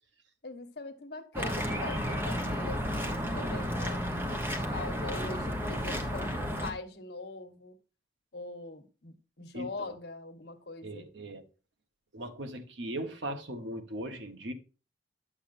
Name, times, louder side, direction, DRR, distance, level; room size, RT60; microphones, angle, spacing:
voice 1, 0.4-4.1 4.3-7.7 8.3-11.1, left 2 dB, 60° left, 1.1 m, -42 dB
sound 1, 1.3-6.7, equal, 10° right, 0.9 m, -32 dB
voice 2, 9.5-9.9 10.8-11.4 12.1-14.5, right 1 dB, 80° right, 1.1 m, -39 dB
9.8 x 7.0 x 2.6 m
head